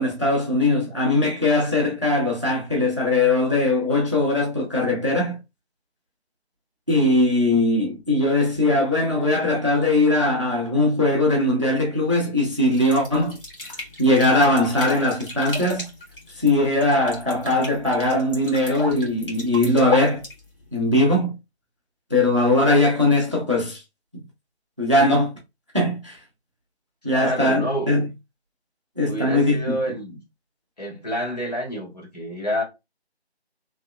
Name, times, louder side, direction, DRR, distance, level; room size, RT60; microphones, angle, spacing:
voice 1, 0.0-5.4 6.9-13.4 14.0-15.9 16.4-20.2 20.7-21.3 22.1-23.8 24.1-24.2 24.8-25.3 25.7-26.2 27.0-28.1 29.0-29.7, left 2 dB, 30° right, 0.6 m, -20 dB
sound 1, 12.7-20.9, equal, 55° left, 1.4 m, -36 dB
voice 2, 27.0-27.9 29.0-30.2 30.8-32.6, equal, 40° left, 1.2 m, -28 dB
3.2 x 2.8 x 2.3 m
figure-of-eight pair, 160°, 33 cm